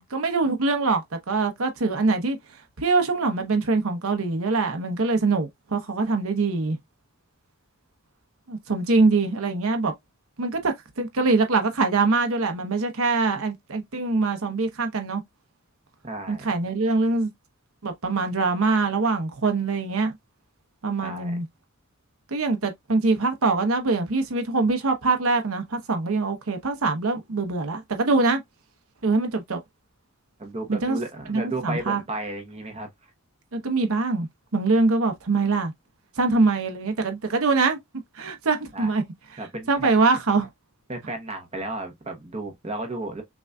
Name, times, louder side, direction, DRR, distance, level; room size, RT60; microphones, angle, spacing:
voice 1, 0.0-2.4 2.8-6.8 8.5-9.9 10.4-15.2 16.3-17.3 17.8-20.1 20.8-21.5 22.3-28.4 29.0-29.6 30.7-31.0 31.3-32.0 33.5-35.7 36.2-37.8 38.1-39.0 39.7-40.5, right 3 dB, 65° right, 0.9 m, -23 dB
voice 2, 16.0-16.5 21.0-21.3 30.4-32.9 38.7-38.9 39.4-39.9 40.9-43.2, right 2 dB, 30° right, 1.0 m, -33 dB
6.0 x 2.6 x 2.3 m
head